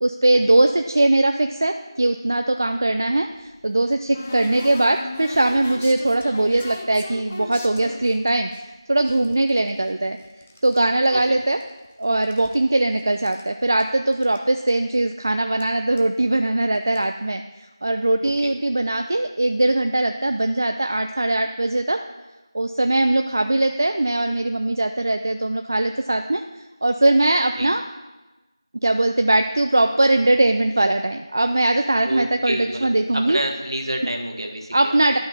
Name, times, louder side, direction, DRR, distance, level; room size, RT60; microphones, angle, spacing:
voice 1, 0.0-10.2 10.6-11.6 12.0-22.0 22.5-26.4 26.8-27.8 28.8-33.4 34.7-35.2, right 2 dB, 40° right, 6 dB, 0.3 m, -20 dB
sound 1, 3.1-8.6 9.0-10.8 11.1-11.9 12.1-13.5 13.8-13.9 14.1-14.4 14.7-14.8 15.6-15.7 16.0-16.2 16.7-17.0, left 2 dB, 20° left, 0.4 m, -38 dB
voice 2, 18.2-18.5 27.6-27.7 32.0-32.9 33.1-35.0, right 1 dB, 65° right, 3 dB, 1.4 m, -28 dB
11.0 x 5.7 x 4.1 m, 1.1 s
figure-of-eight pair, 170°, 3 cm